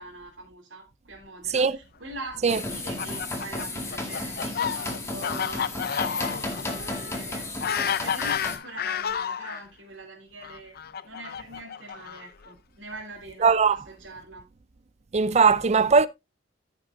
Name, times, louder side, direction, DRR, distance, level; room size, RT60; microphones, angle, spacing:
voice 1, 0.0-10.7 11.0-14.4, right 2 dB, 70° right, 3.0 m, -43 dB
sound 1, 2.5-8.6, left 2 dB, 15° left, 1.9 m, -33 dB
Fowl, 2.7-9.6 10.4-12.5, left 8 dB, 55° left, 0.5 m, -31 dB
voice 2, 13.4-13.8 15.1-16.1, right 5 dB, 35° right, 0.5 m, -19 dB
15.0 x 6.2 x 2.6 m
head